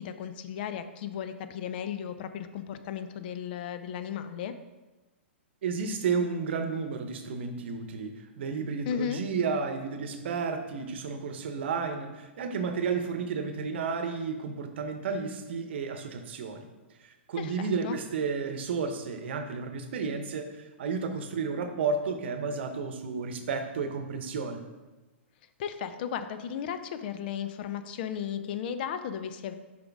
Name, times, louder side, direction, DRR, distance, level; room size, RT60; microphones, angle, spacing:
voice 1, 0.0-4.5 8.9-9.2 17.4-18.0 25.6-29.5, left 8 dB, 50° left, 10 dB, 0.5 m, -35 dB
voice 2, 5.6-16.7 17.0-24.6, right 5 dB, 60° right, 7 dB, 0.8 m, -32 dB
6.9 x 5.1 x 3.5 m, 1.1 s
figure-of-eight pair, 115°, 7 cm